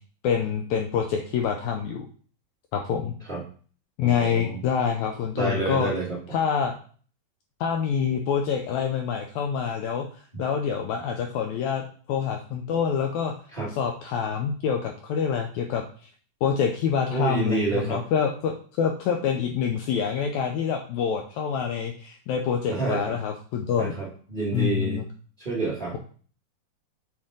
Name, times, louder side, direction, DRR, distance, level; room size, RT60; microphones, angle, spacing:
voice 1, 0.2-2.1 2.7-3.1 4.0-5.9 6.3-6.7 7.6-10.1 10.4-11.8 12.1-13.3 13.7-16.1 16.4-23.9 24.5-25.0, left 7 dB, 85° left, 3 dB, 1.7 m, -26 dB
voice 2, 4.0-4.6 5.3-6.2 13.5-13.7 17.1-18.0 22.7-23.1 23.8-25.0 25.4-26.0, right 3 dB, 50° right, -7 dB, 0.5 m, -28 dB
6.9 x 5.2 x 3.8 m, 0.44 s
omnidirectional pair, 4.0 m